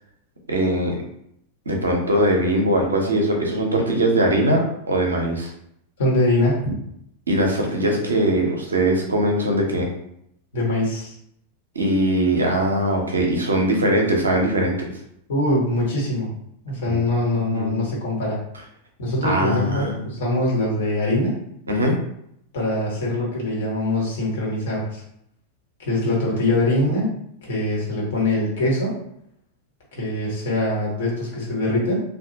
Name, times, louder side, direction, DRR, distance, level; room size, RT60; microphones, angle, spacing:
voice 1, 0.5-1.0 1.7-5.5 7.3-9.9 11.7-14.9 16.8-17.0 17.3-17.8 19.2-20.1 21.7-21.9, right 1 dB, 75° right, 1 dB, 0.6 m, -21 dB
voice 2, 6.0-6.8 10.5-11.1 15.3-16.3 16.6-18.4 19.0-21.4 22.5-25.0 25.8-27.1 27.5-29.0 30.0-32.0, left 1 dB, 60° left, -4 dB, 1.1 m, -23 dB
2.7 x 2.3 x 2.7 m, 0.74 s
figure-of-eight pair, 90°, 0 cm